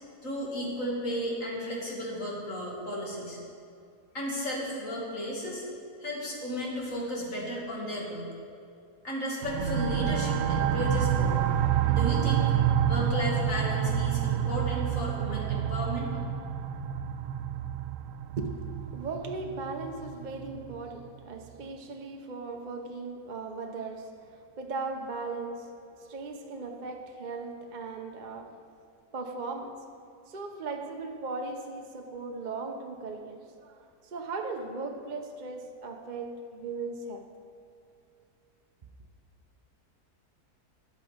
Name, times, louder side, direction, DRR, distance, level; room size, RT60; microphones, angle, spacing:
voice 1, 0.2-3.4 4.1-5.6 6.0-8.3 9.0-11.4 11.9-12.5 12.9-16.1, equal, 55° left, 2.6 m, -34 dB
sound 1, 9.4-20.8, right 9 dB, 90° right, 1.2 m, -28 dB
voice 2, 18.9-28.6 29.1-29.9 30.3-37.3, right 3 dB, 45° right, 0.6 m, -38 dB
14.0 x 9.5 x 5.1 m
omnidirectional pair, 1.7 m